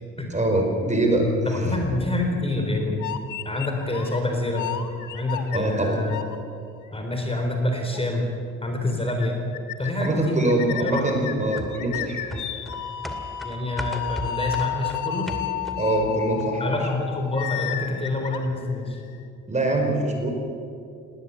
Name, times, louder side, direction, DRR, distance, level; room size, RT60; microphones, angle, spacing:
voice 1, 0.3-1.3 5.5-6.0 10.0-12.2 15.8-16.8 19.5-20.3, right 2 dB, 25° right, 3 dB, 4.9 m, -23 dB
sound 1, 0.9-2.5 3.0-4.2 4.5-6.4 6.8-6.9 7.9-8.0 8.3-8.4 8.7-8.8 9.1-9.3 9.5-10.1 10.5-19.2, left 10 dB, 80° left, 1.6 m, -32 dB
voice 2, 1.4-3.0 3.4-4.7 5.1-6.2 6.9-8.2 8.6-9.4 9.8-11.1 13.4-15.3 16.6-19.0, left 2 dB, 20° left, 2 dB, 4.0 m, -27 dB
sound 2, 11.6-16.0 16.4-16.5, equal, ahead, 2.5 m, -36 dB
19.0 x 18.5 x 8.4 m, 2.5 s
cardioid pair, 90°, 30 cm